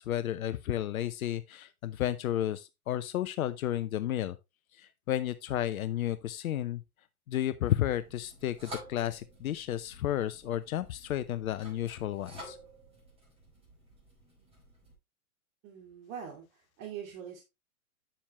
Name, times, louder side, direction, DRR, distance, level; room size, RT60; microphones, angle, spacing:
voice 1, 0.0-4.4 4.8-6.8 7.3-12.6, left 12 dB, 70° left, 0.8 m, -32 dB
sound 1, 7.6-14.9, right 1 dB, 15° right, 5.6 m, -51 dB
voice 2, 15.6-17.4, right 8 dB, 40° right, 2.6 m, -43 dB
8.9 x 7.2 x 3.0 m
hypercardioid pair, 120°, 44 cm